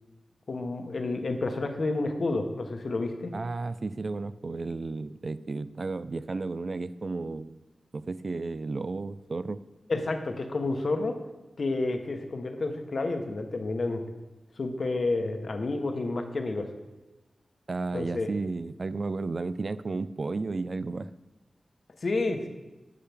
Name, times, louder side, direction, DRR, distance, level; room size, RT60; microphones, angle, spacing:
voice 1, 0.5-3.3 9.9-11.2 11.6-14.0 14.6-16.7 17.9-18.3 22.0-22.5, left 2 dB, 65° left, 6 dB, 0.9 m, -30 dB
voice 2, 3.3-7.6 7.9-9.6 17.7-21.1, right 3 dB, 55° right, 14 dB, 0.3 m, -33 dB
9.9 x 6.7 x 3.5 m, 1.1 s
cardioid pair, 55°, 0 cm